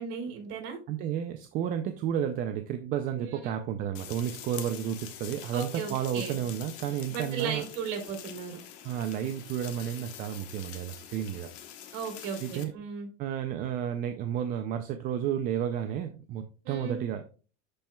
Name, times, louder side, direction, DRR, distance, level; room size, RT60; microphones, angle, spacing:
voice 1, 0.0-0.8 3.2-3.6 5.5-6.4 7.1-8.6 11.9-13.1 16.6-17.0, right 6 dB, 55° right, 3 dB, 2.9 m, -36 dB
voice 2, 0.9-7.6 8.8-11.5 12.4-12.7 13.2-17.2, right 9 dB, 25° right, 7 dB, 0.3 m, -32 dB
sound 1, 3.9-12.6, left 10 dB, 55° left, 1.1 m, -45 dB
11.5 x 4.4 x 2.2 m, 0.36 s
supercardioid pair, 145°, 33 cm